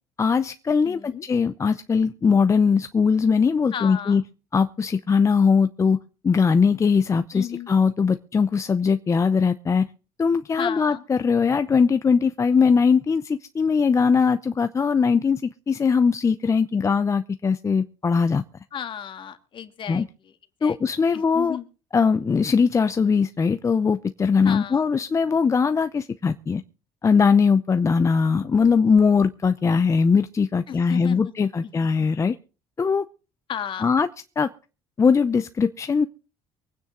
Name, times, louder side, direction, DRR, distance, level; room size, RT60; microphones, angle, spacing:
voice 1, 0.2-4.2 4.5-6.0 6.2-9.9 10.2-18.4 19.9-20.1 20.6-21.6 21.9-26.6 27.0-32.4 32.8-33.0 33.8-34.1 34.4-34.5 35.0-36.1, left 5 dB, 25° left, 0.7 m, -20 dB
voice 2, 0.8-1.2 3.7-4.2 7.3-7.7 10.6-11.0 18.7-20.3 20.6-20.8 21.1-21.7 24.4-24.8 30.7-32.1 33.5-33.9, left 9 dB, 50° left, 1.9 m, -34 dB
24.0 x 9.4 x 3.8 m
cardioid pair, 100°, 11 cm